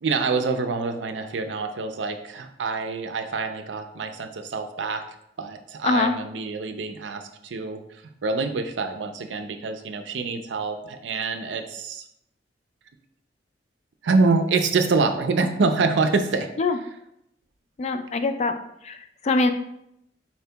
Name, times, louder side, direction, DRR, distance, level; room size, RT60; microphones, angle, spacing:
voice 1, 0.0-5.0 5.4-12.1 14.0-16.9, right 4 dB, 90° right, 7 dB, 0.5 m, -26 dB
voice 2, 17.8-18.6 18.8-19.0 19.2-19.5, left 3 dB, 40° left, 8 dB, 0.3 m, -22 dB
4.4 x 2.8 x 3.3 m, 0.78 s
head